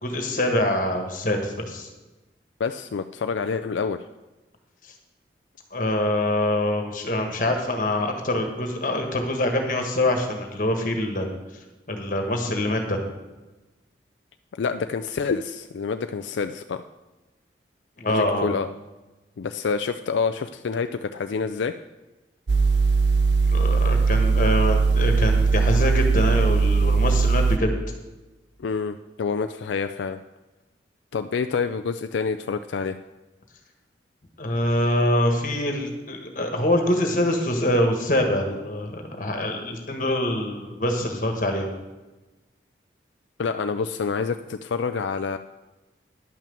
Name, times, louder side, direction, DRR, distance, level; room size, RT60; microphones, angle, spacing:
voice 1, 0.0-1.9 4.8-4.9 5.7-11.3 11.9-13.0 18.0-18.5 23.5-27.7 34.4-41.7, left 1 dB, 45° left, 4 dB, 1.6 m, -24 dB
voice 2, 2.6-4.0 14.5-16.9 18.1-18.7 19.4-21.7 28.6-30.2 31.1-33.0 43.4-45.4, left 5 dB, 85° left, 8 dB, 0.4 m, -27 dB
sound 1, 22.5-27.6, right 4 dB, 75° right, 0.6 m, -19 dB
10.5 x 5.9 x 7.0 m, 1.1 s
head